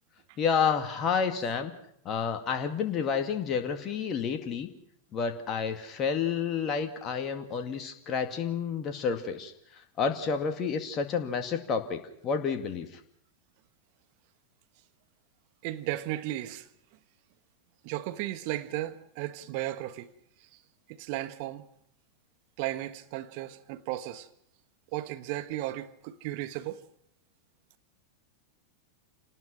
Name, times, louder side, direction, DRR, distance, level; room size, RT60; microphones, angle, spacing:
voice 1, 0.4-1.7 2.1-4.7 5.1-9.5 10.0-12.9, left 6 dB, 30° left, 2.1 m, -30 dB
voice 2, 15.6-16.7 17.8-20.1 20.9-21.7 22.6-24.3 24.9-26.8, right 15 dB, 45° right, 1.5 m, -35 dB
28.0 x 19.5 x 6.1 m
figure-of-eight pair, 90°, 0 cm